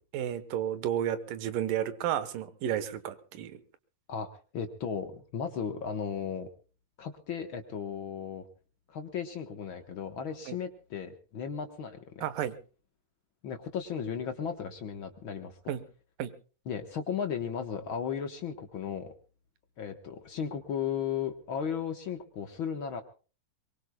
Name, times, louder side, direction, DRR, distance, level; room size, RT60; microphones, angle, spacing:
voice 1, 0.1-3.6 10.5-10.6 12.2-12.6 15.7-15.8 16.2-16.3, right 10 dB, 80° right, 12 dB, 2.8 m, -32 dB
voice 2, 4.5-6.5 7.0-8.5 8.9-12.2 13.4-15.6 16.7-19.1 19.8-23.0, left 7 dB, 60° left, 6 dB, 1.3 m, -35 dB
23.0 x 23.0 x 2.3 m, 0.36 s
omnidirectional pair, 3.9 m